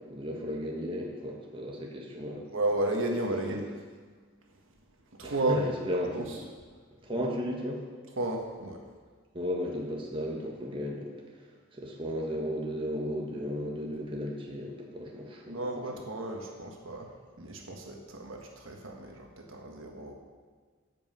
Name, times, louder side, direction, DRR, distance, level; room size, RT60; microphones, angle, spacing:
voice 1, 0.0-2.5 3.5-3.6 5.2-6.3 7.0-7.8 9.3-11.1 11.8-15.6, equal, 25° right, -2 dB, 1.5 m, -34 dB
voice 2, 2.5-3.7 4.5-4.6 5.1-5.6 6.1-6.4 8.1-8.8 15.5-20.1, right 2 dB, 70° right, 1 dB, 1.4 m, -33 dB
15.0 x 5.6 x 5.5 m, 1.5 s
head